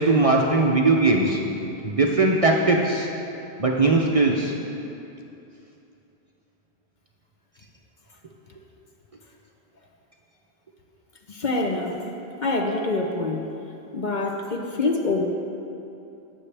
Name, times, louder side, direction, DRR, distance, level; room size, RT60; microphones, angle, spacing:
voice 1, 0.0-1.5 1.8-3.1 3.6-4.5, right 3 dB, 40° right, 0 dB, 0.6 m, -20 dB
voice 2, 11.3-12.0 12.4-13.5 13.9-15.3, left 3 dB, 50° left, 2 dB, 0.8 m, -25 dB
16.5 x 6.3 x 3.4 m, 2.8 s
omnidirectional pair, 1.1 m